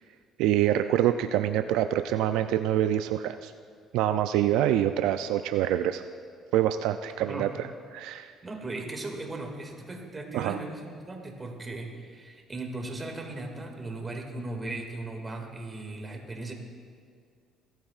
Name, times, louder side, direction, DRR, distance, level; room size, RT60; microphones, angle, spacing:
voice 1, 0.4-3.5 3.9-6.0 6.5-8.3 10.3-10.6, right 11 dB, 85° right, 8 dB, 0.3 m, -26 dB
voice 2, 7.2-7.6 8.4-16.5, right 2 dB, 25° right, 2 dB, 2.1 m, -37 dB
18.0 x 12.5 x 2.4 m, 2.2 s
supercardioid pair, 85°, 0 cm